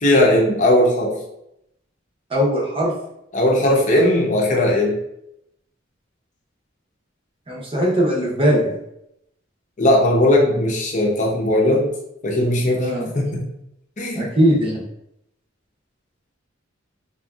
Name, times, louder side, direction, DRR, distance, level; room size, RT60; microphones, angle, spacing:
voice 1, 0.0-1.2 3.3-5.0 9.8-11.9 12.2-13.4 14.0-14.3, left 1 dB, 40° left, -1 dB, 0.7 m, -18 dB
voice 2, 2.3-2.9 7.5-8.8 12.7-13.1 14.1-14.8, equal, 30° right, -4 dB, 0.7 m, -19 dB
3.5 x 2.7 x 2.3 m, 0.81 s
head